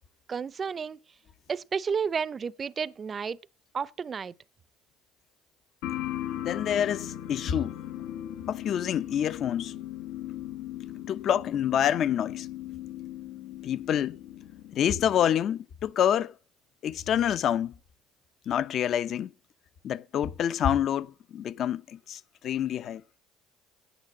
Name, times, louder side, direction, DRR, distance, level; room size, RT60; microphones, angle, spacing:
voice 1, 0.3-1.0 1.5-3.4 3.7-4.3, right 6 dB, 35° right, 0.5 m, -31 dB
sound 1, 5.8-15.3, left 12 dB, 80° left, 1.1 m, -38 dB
voice 2, 6.3-7.8 8.5-9.7 11.1-12.5 13.6-14.2 14.7-16.3 16.8-17.8 18.5-19.3 19.8-23.0, left 9 dB, 55° left, 0.6 m, -27 dB
9.0 x 8.0 x 7.1 m
supercardioid pair, 95°, 0 cm